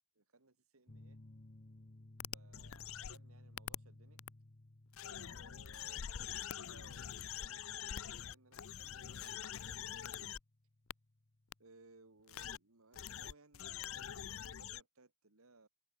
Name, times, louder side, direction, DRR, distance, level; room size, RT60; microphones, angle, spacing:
voice 1, 0.2-1.2 2.3-4.2 5.0-10.3 11.6-15.7, right 3 dB, 70° right, 2.0 m, -64 dB
sound 1, 0.9-12.1, left 1 dB, 35° left, 1.1 m, -60 dB
sound 2, 2.2-3.2 3.6-3.8 4.2-4.3 4.9-10.4 10.9-11.0 11.5-11.6 12.3-12.6 12.9-14.8, left 9 dB, 65° left, 0.5 m, -45 dB
head